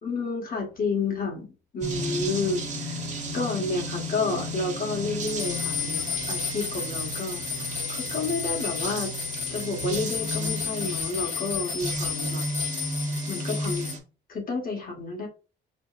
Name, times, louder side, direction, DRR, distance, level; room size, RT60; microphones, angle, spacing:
voice 1, 0.0-3.0 3.3-6.0 6.3-9.1 9.5-12.4 13.3-14.0 14.3-15.3, left 3 dB, 45° left, 1 dB, 1.6 m, -30 dB
sound 1, 1.8-14.0, right 1 dB, 35° right, 1.1 m, -33 dB
sound 2, 5.2-13.9, left 7 dB, 70° left, 1.6 m, -33 dB
5.0 x 2.3 x 2.5 m, 0.33 s
cardioid pair, 90°, 20 cm